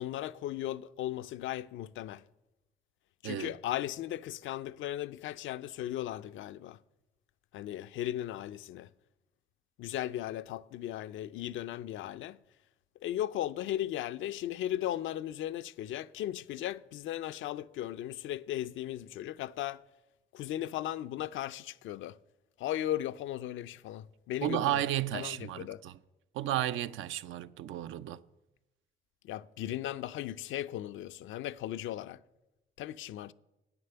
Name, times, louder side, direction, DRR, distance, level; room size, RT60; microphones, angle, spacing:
voice 1, 0.0-2.2 3.2-6.8 7.5-8.9 9.8-12.4 13.0-19.8 20.3-22.2 22.6-24.8 25.1-25.8 29.2-32.2 32.8-33.3, left 12 dB, 80° left, 0.5 m, -37 dB
voice 2, 24.4-26.0 26.3-28.2, right 12 dB, 80° right, 0.5 m, -33 dB
9.7 x 8.9 x 6.8 m
cardioid pair, 90°, 20 cm